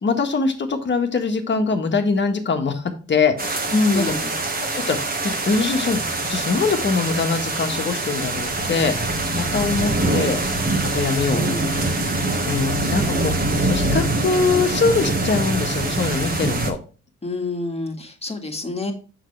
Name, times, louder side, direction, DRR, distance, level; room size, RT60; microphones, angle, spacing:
voice 1, 0.0-3.7 3.9-4.0 4.7-6.0 6.3-8.9 9.3-10.4 10.9-11.4 12.4-13.3 13.6-16.8, left 4 dB, 35° left, 6 dB, 1.5 m, -22 dB
sound 1, 3.4-16.7, right 2 dB, 30° right, 1.6 m, -24 dB
voice 2, 3.7-4.3 11.3-11.7 17.2-18.9, left 2 dB, 20° left, 4 dB, 1.8 m, -25 dB
6.7 x 6.1 x 3.2 m, 0.36 s
cardioid pair, 90°, 30 cm